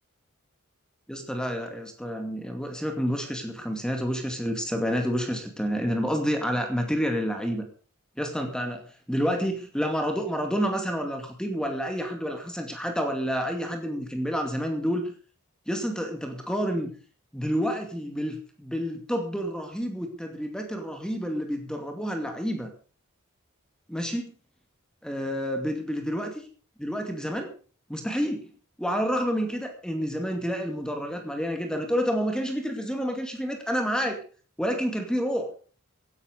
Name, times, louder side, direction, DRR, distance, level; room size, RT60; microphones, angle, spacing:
voice 1, 1.1-7.7 8.2-15.1 15.7-16.9 17.3-22.7 23.9-24.3 25.0-26.4 26.8-27.5 27.9-28.5 28.8-34.2 34.6-35.5, equal, 5° left, 4 dB, 2.3 m, -29 dB
16.0 x 11.5 x 5.2 m, 0.38 s
head